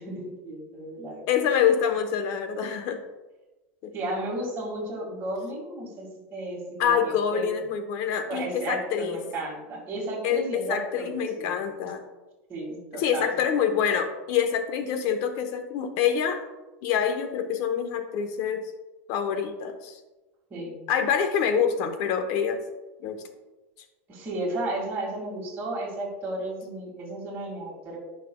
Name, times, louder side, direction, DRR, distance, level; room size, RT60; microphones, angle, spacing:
voice 1, 0.0-1.3 3.9-7.4 8.3-11.6 12.5-13.4 20.5-20.9 24.1-28.0, right 1 dB, 30° right, -5 dB, 2.0 m, -33 dB
voice 2, 1.3-3.0 3.8-3.9 6.8-9.2 10.2-12.0 12.9-16.4 16.8-18.7 19.1-20.0 20.9-22.6 23.0-23.2, left 7 dB, 60° left, 8 dB, 0.9 m, -26 dB
11.0 x 5.8 x 2.3 m, 1.1 s
supercardioid pair, 120°, 7 cm